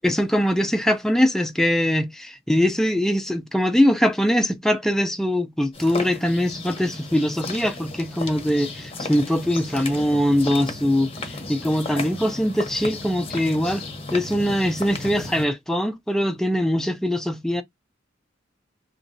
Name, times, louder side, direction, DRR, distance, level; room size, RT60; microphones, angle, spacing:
voice 1, 0.0-11.1 11.5-13.8 14.1-17.6, equal, ahead, 0.5 m, -22 dB
sound 1, 5.7-15.5, left 2 dB, 30° left, 0.8 m, -34 dB
3.0 x 2.7 x 2.6 m
head